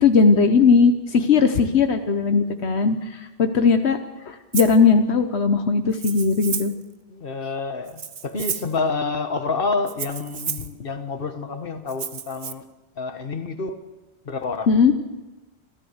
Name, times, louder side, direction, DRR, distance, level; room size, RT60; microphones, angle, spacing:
voice 1, 0.0-3.0 3.4-4.0 4.3-6.7 14.7-14.9, left 5 dB, 85° left, 7 dB, 1.3 m, -18 dB
Rattle (instrument), 4.5-4.8 5.9-6.8 7.9-8.8 9.9-10.7 11.9-12.5, right 7 dB, 60° right, 1.0 m, -31 dB
voice 2, 7.1-12.6 13.0-13.8 14.2-14.7, left 4 dB, 60° left, 8 dB, 1.7 m, -28 dB
26.5 x 14.5 x 8.0 m, 1.2 s
omnidirectional pair, 1.1 m